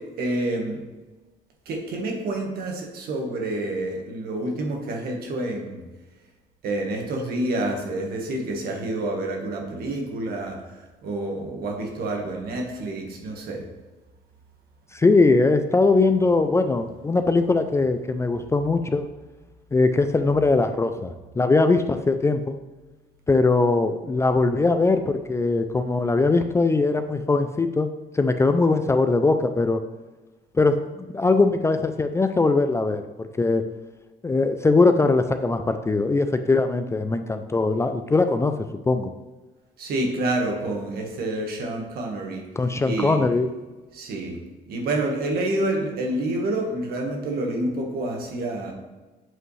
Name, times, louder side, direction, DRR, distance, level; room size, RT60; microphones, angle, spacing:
voice 1, 0.2-0.8 1.6-5.8 6.6-10.6 11.0-13.6 39.8-42.5 42.8-43.2 43.9-44.4 44.7-48.7, right 1 dB, 65° right, 1 dB, 1.5 m, -28 dB
voice 2, 14.9-19.1 19.7-22.5 23.3-27.9 28.1-29.8 30.5-33.6 34.2-38.5 38.9-39.1 42.6-43.5, left 3 dB, 15° left, 8 dB, 0.4 m, -21 dB
7.7 x 5.1 x 3.2 m, 1.2 s
cardioid pair, 110°, 17 cm